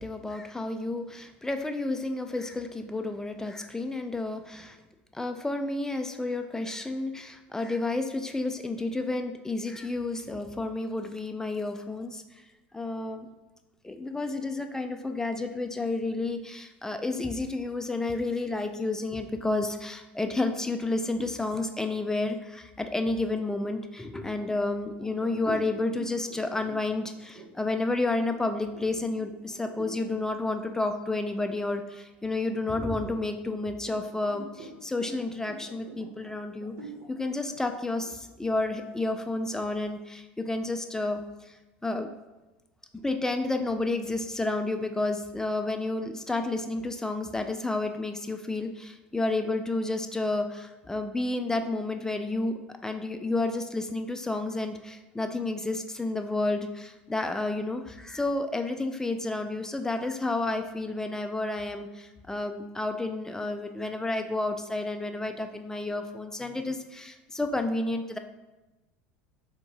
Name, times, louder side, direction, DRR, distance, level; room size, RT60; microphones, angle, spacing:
voice 1, 0.0-4.8 5.1-12.4 12.7-13.3 13.8-36.7 37.1-41.6 41.8-42.1 43.0-68.2, left 2 dB, 10° left, 7 dB, 0.4 m, -31 dB
sound 1, 25.0-30.1 30.6-30.8 31.3-32.1 32.6-39.3, right 3 dB, 55° right, 1.1 m, -48 dB
4.3 x 2.6 x 4.6 m, 1.1 s
figure-of-eight pair, 75°, 6 cm